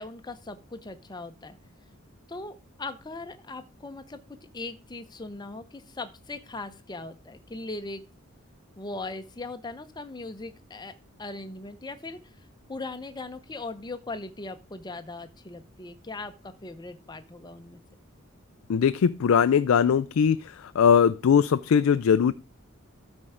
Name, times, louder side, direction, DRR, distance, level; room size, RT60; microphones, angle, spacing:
voice 1, 0.0-1.6 2.3-4.2 4.5-8.0 8.8-10.9 11.2-12.2 12.7-17.8, left 2 dB, 20° left, 0.7 m, -39 dB
voice 2, 18.7-22.3, left 7 dB, 75° left, 0.4 m, -21 dB
12.5 x 4.4 x 4.9 m
head